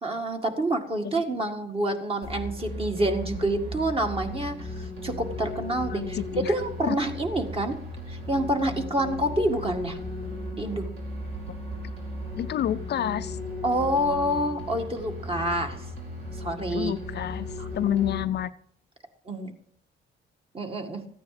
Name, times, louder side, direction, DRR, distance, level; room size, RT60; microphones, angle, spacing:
voice 1, 0.0-6.2 6.5-7.8 8.1-10.0 10.5-10.9 13.6-15.8 16.4-16.9 17.6-17.7 19.3-19.5 20.5-21.0, right 1 dB, 30° right, 4 dB, 1.9 m, -27 dB
sound 1, 2.2-18.2, left 1 dB, 80° right, 4.4 m, -36 dB
voice 2, 5.9-6.5 6.9-7.0 12.4-13.4 16.7-17.5 17.7-18.5, left 11 dB, 55° left, 12 dB, 0.5 m, -28 dB
14.0 x 9.3 x 4.9 m, 0.63 s
cardioid pair, 90°, 20 cm